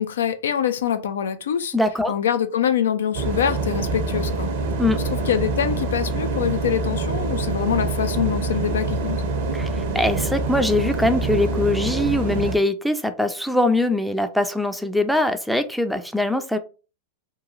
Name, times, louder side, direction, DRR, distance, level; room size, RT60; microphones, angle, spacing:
voice 1, 0.0-1.7 2.1-4.5 5.3-9.2, left 9 dB, 80° left, 0.3 m, -24 dB
voice 2, 1.7-2.1 4.8-5.0 9.5-16.6, left 1 dB, ahead, 0.4 m, -22 dB
sound 1, 3.1-12.6, right 3 dB, 60° right, 0.6 m, -25 dB
3.0 x 2.3 x 2.5 m
hypercardioid pair, 110°, 0 cm